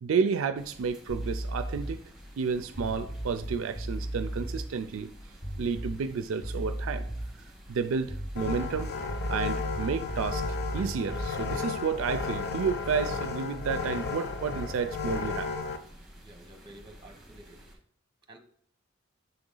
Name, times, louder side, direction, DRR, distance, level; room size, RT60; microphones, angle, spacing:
voice 1, 0.0-2.0 2.4-5.1 5.6-7.0 7.7-8.9 9.3-10.4 10.7-15.5, right 5 dB, 70° right, 10 dB, 0.4 m, -31 dB
sound 1, 0.5-17.7, equal, 5° right, 1.9 m, -52 dB
sound 2, 1.1-2.1 2.7-4.6 5.4-6.1 6.4-7.4 8.0-11.7, right 1 dB, 15° left, 0.7 m, -36 dB
sound 3, 8.4-15.8, left 4 dB, 50° left, 0.6 m, -34 dB
voice 2, 16.2-17.7 18.3-18.4, right 1 dB, 25° right, 4 dB, 1.0 m, -51 dB
6.8 x 3.9 x 3.8 m, 0.62 s
head